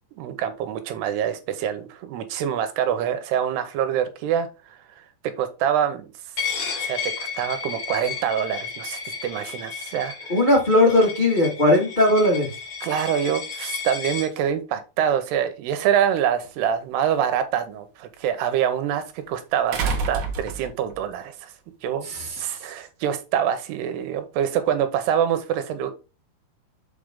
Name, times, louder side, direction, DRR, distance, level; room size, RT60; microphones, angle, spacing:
voice 1, 0.2-4.8 5.4-6.1 6.6-10.4 12.8-21.5 21.8-22.1 22.4-25.9, right 9 dB, 85° right, 3.0 m, -25 dB
Coin (dropping), 6.4-14.3, left 6 dB, 45° left, 2.9 m, -33 dB
voice 2, 10.3-12.5 22.0-22.3, left 1 dB, 80° left, 0.4 m, -18 dB
sound 1, 16.4-16.5 19.7-21.0 22.4-22.5, right 4 dB, 60° right, 2.3 m, -27 dB
6.8 x 5.1 x 3.6 m
omnidirectional pair, 4.7 m